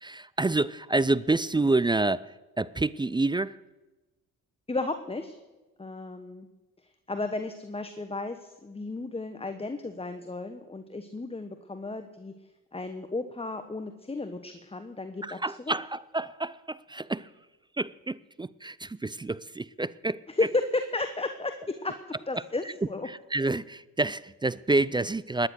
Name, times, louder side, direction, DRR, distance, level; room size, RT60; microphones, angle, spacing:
voice 1, 0.0-3.6 15.2-17.3 17.8-20.2 22.3-22.4 23.1-25.5, right 2 dB, 15° right, 0.4 m, -28 dB
voice 2, 4.7-5.4 5.8-6.5 7.1-12.3 12.7-15.4 15.7-15.8 20.4-22.0 22.3-23.1, left 2 dB, 15° left, 1.2 m, -33 dB
17.5 x 10.5 x 6.4 m
supercardioid pair, 60°, 37 cm